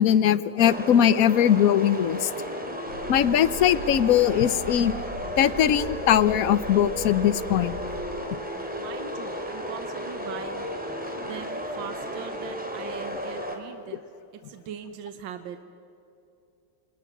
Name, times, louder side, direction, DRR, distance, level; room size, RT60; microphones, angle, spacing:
voice 1, 0.0-2.3 3.1-4.9 5.4-7.8, left 10 dB, 65° left, 16 dB, 0.9 m, -20 dB
sound 1, 0.6-13.6, equal, 5° right, 2.6 m, -34 dB
sound 2, 2.9-8.1, left 1 dB, 55° right, 7.1 m, -40 dB
voice 2, 8.8-10.7 11.2-14.0 14.5-15.6, right 8 dB, 75° right, 8 dB, 1.8 m, -40 dB
28.5 x 27.5 x 6.0 m, 2.7 s
omnidirectional pair, 2.1 m